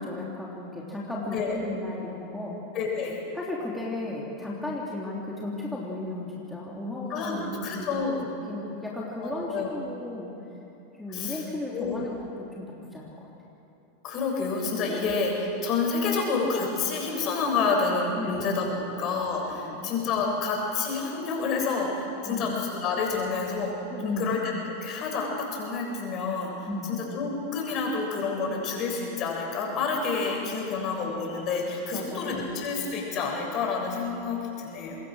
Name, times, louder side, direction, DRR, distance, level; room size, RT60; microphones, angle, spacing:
voice 1, 0.0-2.6 3.3-8.1 8.5-10.3 10.9-12.2 12.6-13.3 14.9-15.1 18.2-18.5 18.8-18.9 19.6-19.9 22.2-22.5 23.9-24.4 26.6-27.0 31.9-32.5, left 2 dB, 5° left, -5 dB, 3.3 m, -35 dB
voice 2, 1.3-1.6 2.7-3.2 7.1-7.4 7.6-8.3 9.2-9.7 11.1-11.4 11.7-12.0 14.0-18.7 19.0-26.5 26.9-35.0, left 4 dB, 45° left, 0 dB, 7.0 m, -29 dB
26.0 x 21.0 x 6.5 m, 2.9 s
hypercardioid pair, 100°, 0 cm